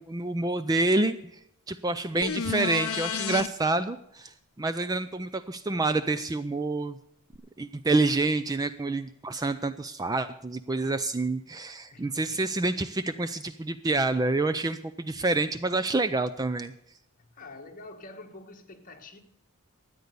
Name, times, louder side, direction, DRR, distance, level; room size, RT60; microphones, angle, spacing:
voice 1, 0.0-1.4 1.7-7.0 7.6-16.7, right 2 dB, 15° right, 0.4 m, -28 dB
sound 1, 2.2-3.5 7.3-7.4, left 7 dB, 65° left, 0.6 m, -31 dB
voice 2, 11.9-12.4 17.2-19.2, left 2 dB, 35° left, 1.6 m, -47 dB
13.5 x 9.4 x 6.8 m
head